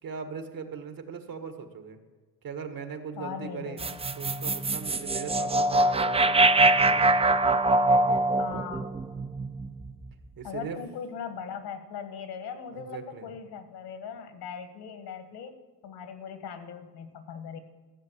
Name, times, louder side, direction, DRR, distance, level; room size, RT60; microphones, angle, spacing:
voice 1, 0.0-2.0 2.4-3.8 4.2-7.2 10.4-10.8 12.7-13.3, right 6 dB, 55° right, 7 dB, 1.9 m, -39 dB
voice 2, 3.2-4.0 8.4-9.0 10.4-15.5 15.8-17.6, left 7 dB, 70° left, 9 dB, 1.7 m, -39 dB
sound 1, 3.8-10.1, right 2 dB, 15° right, 0.5 m, -23 dB
14.5 x 7.2 x 8.1 m, 1.3 s
cardioid pair, 80°, 40 cm